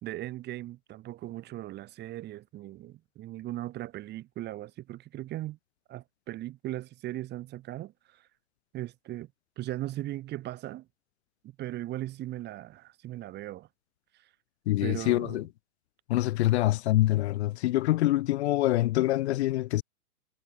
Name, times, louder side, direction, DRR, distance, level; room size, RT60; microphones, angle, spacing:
voice 1, 0.0-5.6 5.9-7.9 8.7-9.3 9.6-10.9 11.6-13.7 14.8-15.4, right 15 dB, 25° right, 2.0 m, -38 dB
voice 2, 14.7-15.5 16.1-19.8, left 16 dB, 50° left, 1.1 m, -25 dB
hypercardioid pair, 135°, 42 cm